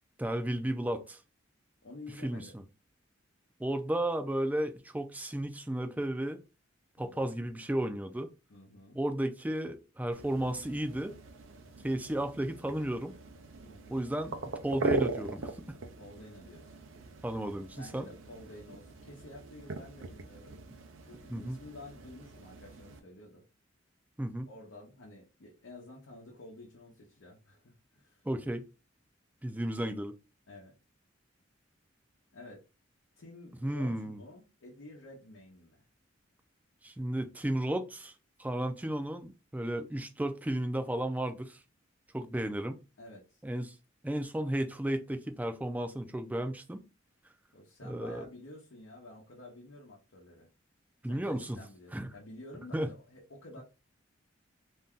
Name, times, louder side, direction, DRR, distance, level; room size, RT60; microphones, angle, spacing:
voice 1, 0.2-1.2 2.2-2.4 3.6-6.4 7.0-8.3 8.9-11.1 11.8-13.1 13.9-14.3 14.6-15.8 17.2-18.1 21.3-21.6 24.2-24.5 28.2-28.6 29.4-30.1 33.6-34.2 36.8-38.1 38.4-41.6 42.1-42.8 43.4-43.7 44.0-46.8 47.8-48.3 51.0-51.6 51.9-52.1 52.7-52.9, right 1 dB, 10° right, 0.3 m, -33 dB
voice 2, 1.8-2.6 7.0-7.3 8.5-9.0 13.6-14.0 16.0-16.9 17.8-20.6 21.0-23.5 24.5-28.2 30.5-30.7 32.3-32.6 33.2-35.8 43.0-43.4 47.5-50.5 51.1-53.6, left 2 dB, 90° left, 0.8 m, -51 dB
sound 1, 10.1-23.0, right 3 dB, 85° right, 0.5 m, -40 dB
2.6 x 2.2 x 3.5 m
head